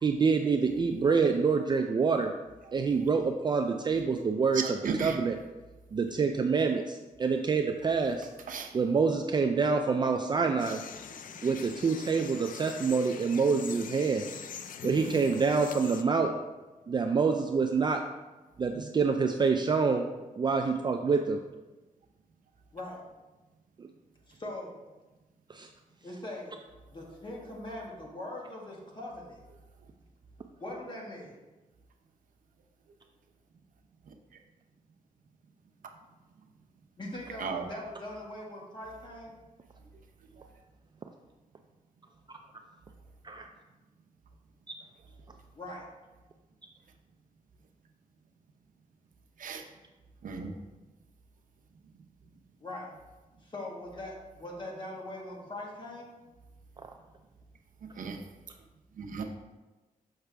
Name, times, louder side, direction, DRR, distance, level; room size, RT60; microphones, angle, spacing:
voice 1, 0.0-2.3 2.7-4.6 5.0-5.4 5.9-8.3 8.7-10.8 11.4-14.2 14.8-16.3 16.9-18.0 18.6-20.1 20.4-21.4 25.5-25.7 43.2-43.5 44.7-44.8, right 5 dB, 30° right, 4 dB, 0.3 m, -26 dB
voice 2, 4.5-5.2 8.5-8.7 34.1-34.2 37.4-37.7 40.4-40.5 49.4-49.6 50.2-50.6 58.0-58.2 59.0-59.2, right 5 dB, 65° right, 3 dB, 0.7 m, -35 dB
sound 1, 10.6-16.0, left 7 dB, 70° left, 0.4 m, -43 dB
voice 3, 24.3-24.7 26.0-26.5 26.9-29.4 30.6-31.4 37.0-39.3 45.5-45.9 52.6-52.9 53.4-56.1, left 1 dB, 35° left, -2 dB, 1.5 m, -41 dB
6.6 x 5.7 x 3.4 m, 1.2 s
wide cardioid pair, 140°, 14 cm